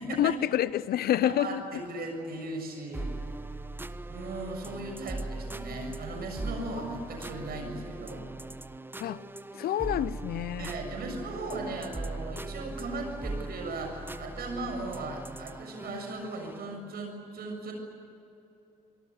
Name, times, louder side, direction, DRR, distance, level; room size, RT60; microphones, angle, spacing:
voice 1, 0.2-1.6 9.0-9.2 9.5-10.7, left 12 dB, 55° left, 0.7 m, -28 dB
voice 2, 1.2-3.1 4.1-8.3 10.6-17.7, right 2 dB, 55° right, 7.0 m, -37 dB
sound 1, 2.9-16.8, right 2 dB, 10° right, 1.2 m, -39 dB
27.0 x 19.0 x 9.6 m
figure-of-eight pair, 45°, 19 cm